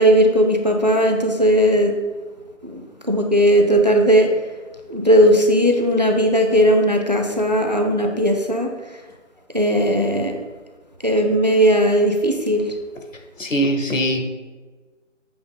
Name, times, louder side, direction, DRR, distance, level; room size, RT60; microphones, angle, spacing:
voice 1, 0.0-1.9 2.6-4.3 4.9-8.7 9.5-10.3 11.0-12.7, equal, 35° right, 4 dB, 0.5 m, -17 dB
voice 2, 13.4-14.3, right 1 dB, 75° left, 5 dB, 1.2 m, -21 dB
8.0 x 3.2 x 5.4 m, 1.4 s
figure-of-eight pair, 160°, 38 cm